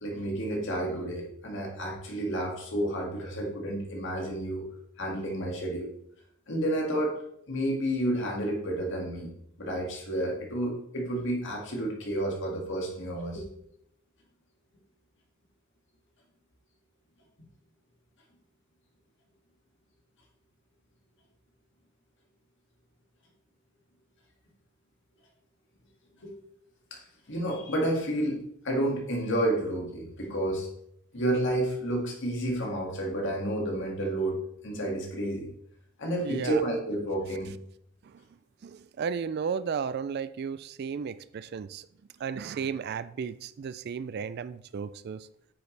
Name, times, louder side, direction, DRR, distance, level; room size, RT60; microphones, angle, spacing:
voice 1, 0.0-4.6 5.0-5.9 6.5-7.1 7.5-9.3 9.6-13.4 26.2-26.3 26.9-27.0 27.3-30.7 31.1-34.4 34.6-35.5 36.0-37.5, right 1 dB, 55° left, 2.2 m, -30 dB
voice 2, 36.2-36.6 38.1-38.2 38.6-41.9 42.2-45.3, right 6 dB, 50° right, 0.3 m, -34 dB
9.3 x 7.1 x 3.3 m
head